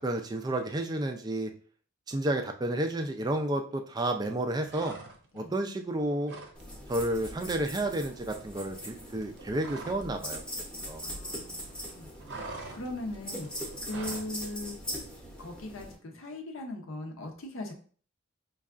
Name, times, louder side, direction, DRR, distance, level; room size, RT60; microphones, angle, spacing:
voice 1, 0.0-1.5 2.1-4.9 5.3-6.3 6.9-10.4 10.8-11.0, right 1 dB, 20° right, 5 dB, 0.3 m, -31 dB
sound 1, 4.6-5.5 5.8-6.6 6.9-7.1 7.4-10.2 10.4-11.5 11.8-14.3, right 3 dB, 55° right, 0.6 m, -45 dB
sound 2, 6.5-15.9, equal, 5° left, 0.8 m, -41 dB
voice 2, 11.0-14.8 15.4-17.7, left 1 dB, 65° left, 3 dB, 0.7 m, -40 dB
5.3 x 2.3 x 2.4 m, 0.43 s
head